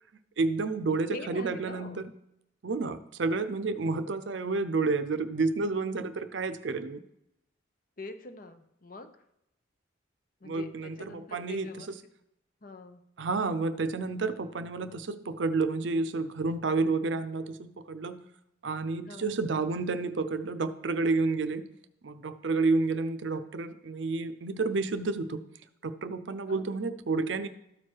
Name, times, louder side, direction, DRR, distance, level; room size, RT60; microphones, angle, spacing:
voice 1, 0.4-2.1 2.6-7.0 10.4-11.9 13.2-18.2 18.6-21.7 22.0-25.4 25.8-27.5, right 3 dB, 70° right, 12 dB, 0.6 m, -30 dB
voice 2, 1.0-2.1 8.0-9.1 10.4-11.9 12.6-13.0 19.1-19.4 26.5-26.6, left 2 dB, 45° left, 8 dB, 0.7 m, -44 dB
13.0 x 4.6 x 4.6 m, 0.83 s
head